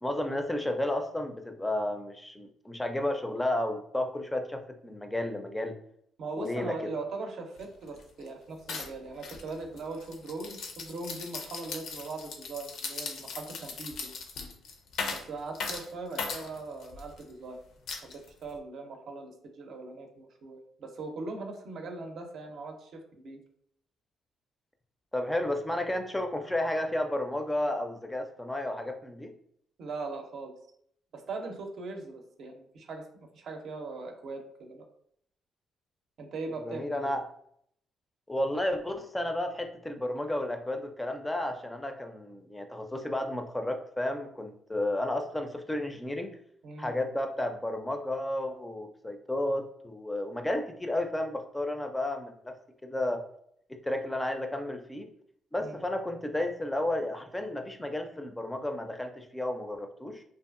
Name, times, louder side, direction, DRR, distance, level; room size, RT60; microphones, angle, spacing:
voice 1, 0.0-5.8 6.3-6.9 25.1-29.3 36.6-37.2 38.3-46.4 46.8-52.5 52.8-53.2 53.7-55.1 55.5-60.2, left 1 dB, 10° left, 5 dB, 0.4 m, -32 dB
voice 2, 6.2-14.1 15.1-17.6 18.0-23.4 29.8-30.5 31.1-33.1 33.3-34.8 36.2-37.1 46.6-46.9 55.6-55.8, right 3 dB, 65° right, 4 dB, 0.5 m, -40 dB
sound 1, 7.6-7.7 7.9-8.3 8.7-17.2 17.9-18.6, left 4 dB, 75° left, 0.4 m, -39 dB
2.6 x 2.4 x 2.4 m, 0.67 s
cardioid pair, 90°, 0 cm